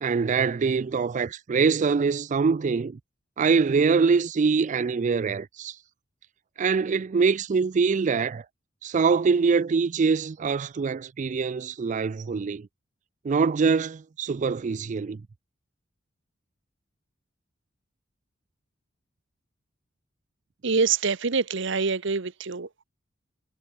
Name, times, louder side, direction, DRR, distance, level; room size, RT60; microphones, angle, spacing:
voice 1, 0.0-3.0 3.4-5.7 6.6-8.4 8.8-12.7 13.2-15.2, right 5 dB, 40° right, 0.4 m, -24 dB
voice 2, 20.6-22.8, right 4 dB, 65° right, 1.0 m, -25 dB
head